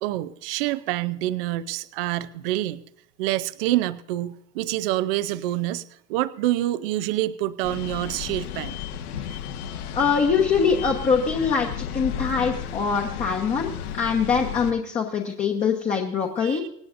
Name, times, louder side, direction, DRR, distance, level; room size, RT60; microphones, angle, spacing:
voice 1, 0.0-2.8 3.2-5.8 6.1-8.8 9.3-9.4 16.4-16.7, right 15 dB, 40° right, 16 dB, 0.5 m, -27 dB
sound 1, 7.6-14.7, left 9 dB, 70° left, 1.7 m, -33 dB
voice 2, 9.9-16.6, left 5 dB, 15° left, 0 dB, 1.1 m, -23 dB
25.5 x 9.3 x 2.6 m, 0.72 s
supercardioid pair, 150°, 46 cm